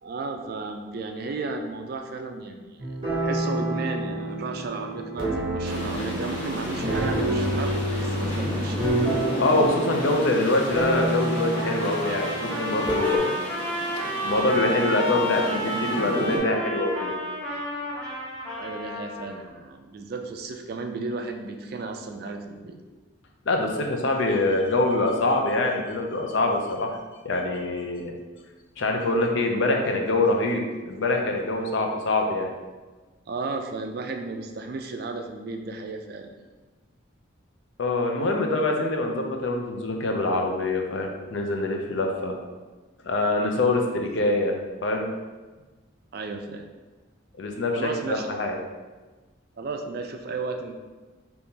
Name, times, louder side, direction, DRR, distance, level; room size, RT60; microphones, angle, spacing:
voice 1, 0.0-2.8 3.2-9.0 18.5-22.8 33.3-36.3 43.7-43.9 46.1-46.7 47.7-48.3 49.6-50.8, right 3 dB, 50° right, 4 dB, 0.3 m, -34 dB
sound 1, 2.8-13.2, right 1 dB, 25° right, 0.8 m, -28 dB
sound 2, 5.6-16.4, equal, 25° left, 1.1 m, -33 dB
voice 2, 9.4-13.3 14.2-17.1 23.5-27.0 27.2-28.1 28.8-32.5 37.8-42.4 43.0-44.5 44.8-45.1 47.4-48.6, left 2 dB, 65° left, 2 dB, 0.5 m, -24 dB
Trumpet, 11.5-19.4, equal, 5° left, 1.0 m, -31 dB
3.6 x 2.9 x 2.7 m, 1.3 s
head